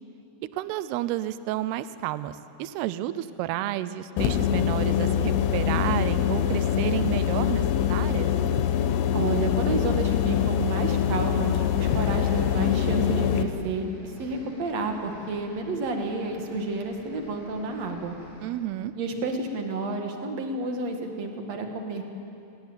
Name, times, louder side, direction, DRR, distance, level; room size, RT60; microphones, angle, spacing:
voice 1, 0.5-8.3 18.4-18.9, right 13 dB, 80° right, 14 dB, 2.4 m, -31 dB
sound 1, 4.2-13.4, left 10 dB, 90° left, 3.6 m, -24 dB
voice 2, 9.1-18.2 19.0-22.0, right 3 dB, 55° right, 4 dB, 2.0 m, -30 dB
sound 2, 11.8-18.5, equal, 10° left, 7.2 m, -50 dB
26.0 x 18.0 x 9.0 m, 2.8 s
omnidirectional pair, 5.5 m